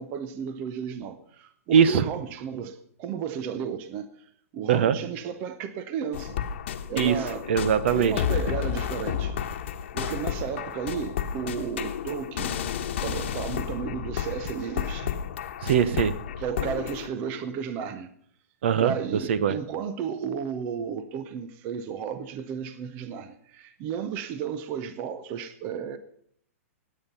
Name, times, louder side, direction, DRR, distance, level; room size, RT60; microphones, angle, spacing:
voice 1, 0.0-4.1 4.5-6.4 6.9-7.5 7.9-9.6 9.9-12.6 13.0-15.1 16.4-18.1 18.8-26.0, right 7 dB, 20° right, 0.6 m, -33 dB
voice 2, 1.7-2.0 4.7-5.0 7.0-8.2 15.6-16.2 18.6-18.9 19.3-19.6, right 8 dB, 50° right, 0.8 m, -21 dB
sound 1, 6.1-17.1, left 9 dB, 45° left, 1.2 m, -31 dB
18.5 x 9.1 x 5.5 m
hypercardioid pair, 175°, 8 cm